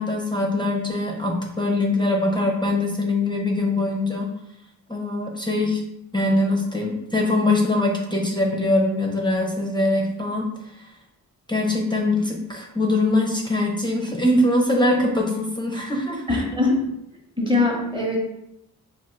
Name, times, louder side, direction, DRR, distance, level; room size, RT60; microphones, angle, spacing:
voice 1, 0.0-4.3 4.9-5.8 6.1-10.5 11.5-16.4, left 2 dB, 10° left, 0 dB, 0.5 m, -22 dB
voice 2, 16.3-16.9 17.4-18.2, left 2 dB, 15° right, -2 dB, 0.8 m, -22 dB
3.6 x 2.5 x 2.4 m, 0.81 s
cardioid pair, 70°, 37 cm